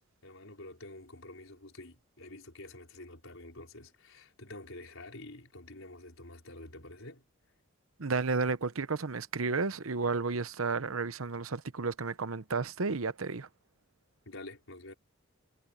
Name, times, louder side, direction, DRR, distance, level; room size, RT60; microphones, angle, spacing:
voice 1, 0.0-7.2 14.2-14.9, left 2 dB, 70° left, 4.9 m, -48 dB
voice 2, 8.0-13.5, right 4 dB, 80° right, 1.0 m, -32 dB
head